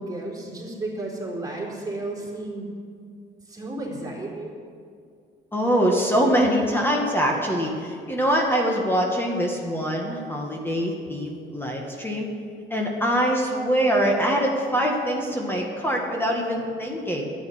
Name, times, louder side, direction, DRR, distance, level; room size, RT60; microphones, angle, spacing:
voice 1, 0.0-2.7 3.5-4.5, right 2 dB, 20° right, -3 dB, 4.1 m, -33 dB
voice 2, 5.5-12.3 12.7-17.2, equal, 10° left, 0 dB, 2.0 m, -23 dB
10.5 x 8.9 x 9.6 m, 2.2 s
cardioid pair, 90°, 20 cm